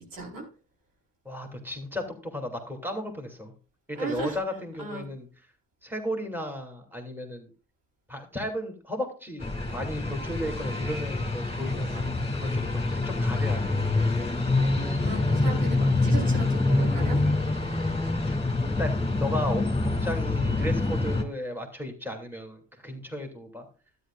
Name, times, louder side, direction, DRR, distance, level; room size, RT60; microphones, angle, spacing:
voice 1, 0.1-0.4 3.9-4.4 4.8-5.1 14.4-17.2, right 2 dB, 80° right, -1 dB, 4.3 m, -36 dB
voice 2, 1.2-3.5 3.9-5.3 5.8-7.5 8.1-13.8 18.2-18.4 18.8-23.6, left 1 dB, 5° right, 2 dB, 2.9 m, -35 dB
sound 1, 9.4-21.2, left 2 dB, 15° left, 2.5 m, -26 dB
12.5 x 10.0 x 2.5 m, 0.36 s
supercardioid pair, 50°, 33 cm